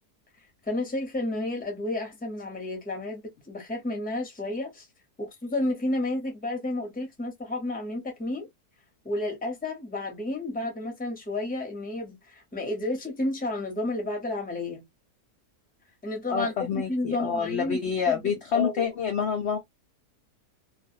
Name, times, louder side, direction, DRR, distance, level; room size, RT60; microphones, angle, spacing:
voice 1, 0.7-4.8 5.2-8.5 9.0-14.8 16.0-17.8 18.1-18.9, left 2 dB, 5° left, 0.7 m, -31 dB
voice 2, 16.3-19.6, left 7 dB, 65° left, 0.6 m, -28 dB
2.4 x 2.4 x 2.6 m
omnidirectional pair, 1.7 m